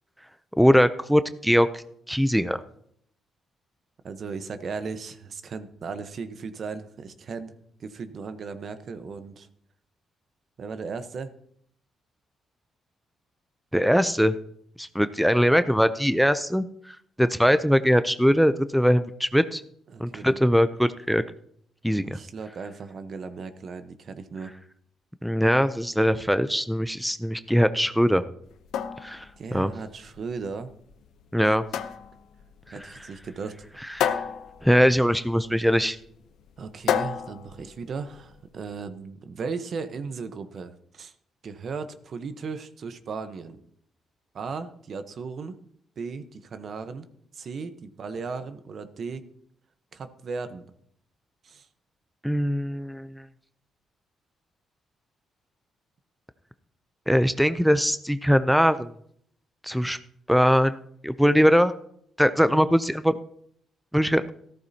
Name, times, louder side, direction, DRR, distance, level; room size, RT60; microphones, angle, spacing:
voice 1, 0.6-2.6 13.7-14.3 14.8-19.6 20.0-21.2 21.8-22.2 25.2-28.2 29.0-29.2 29.5-29.7 31.3-31.6 34.0-34.2 34.6-36.0 52.2-53.1 57.1-58.9 59.6-60.0 60.3-60.8 61.0-61.7 62.2-63.1 63.9-64.2, equal, ahead, 12 dB, 0.5 m, -21 dB
voice 2, 4.0-7.5 7.8-9.5 10.6-11.3 19.9-20.4 22.0-24.5 29.4-30.7 32.7-33.7 36.6-41.1 41.4-43.6 44.3-45.6 46.0-47.1 47.3-49.3 49.9-50.7 51.4-51.7, right 5 dB, 55° right, 10 dB, 1.0 m, -36 dB
sound 1, 28.4-38.4, left 8 dB, 80° left, 0.8 m, -33 dB
14.5 x 13.5 x 2.8 m, 0.68 s
cardioid pair, 90°, 0 cm